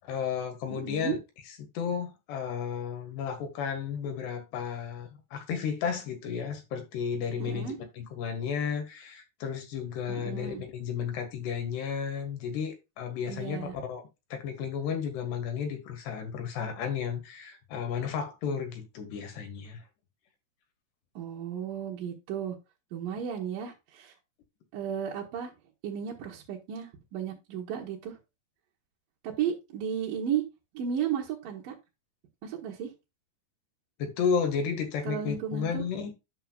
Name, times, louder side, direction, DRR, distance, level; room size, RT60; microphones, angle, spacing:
voice 1, 0.0-1.2 1.8-13.6 13.9-14.0 14.3-19.8 34.0-36.1, left 7 dB, 85° left, 3.9 m, -33 dB
voice 2, 0.7-1.2 7.4-7.8 10.1-10.6 13.3-13.7 21.2-22.6 22.9-24.1 24.7-25.5 25.8-28.2 29.2-30.4 30.7-31.8 32.4-32.9 35.0-35.8, right 8 dB, 65° right, 2.7 m, -34 dB
10.5 x 6.6 x 2.4 m
omnidirectional pair, 4.7 m